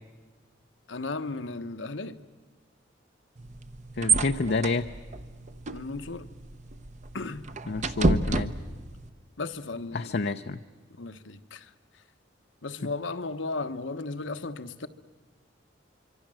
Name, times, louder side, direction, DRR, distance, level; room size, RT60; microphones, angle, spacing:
voice 1, 0.9-2.2 5.7-6.3 7.1-7.4 9.4-10.2 11.0-11.7 12.6-14.9, left 3 dB, 75° left, 1.2 m, -35 dB
sound 1, 3.4-9.1, right 3 dB, 40° right, 0.9 m, -30 dB
voice 2, 4.0-4.9 7.7-8.5 9.9-10.6, left 3 dB, 60° left, 0.7 m, -28 dB
25.0 x 24.5 x 7.7 m
head